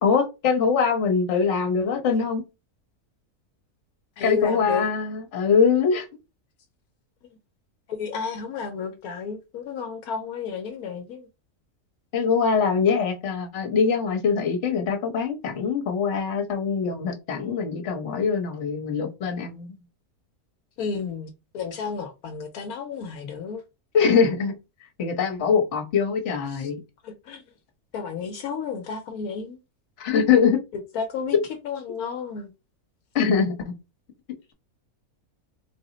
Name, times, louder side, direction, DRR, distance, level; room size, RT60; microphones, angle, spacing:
voice 1, 0.0-2.4 4.2-6.1 12.1-19.7 23.9-24.5 25.0-26.7 30.0-30.6 33.1-33.6, left 6 dB, 55° left, 1.2 m, -23 dB
voice 2, 4.2-4.8 7.9-11.3 20.8-23.6 26.5-26.7 27.0-27.4 27.9-29.6 30.7-31.4 31.6-32.5, left 6 dB, 80° left, 1.1 m, -32 dB
3.8 x 2.0 x 3.8 m
omnidirectional pair, 1.5 m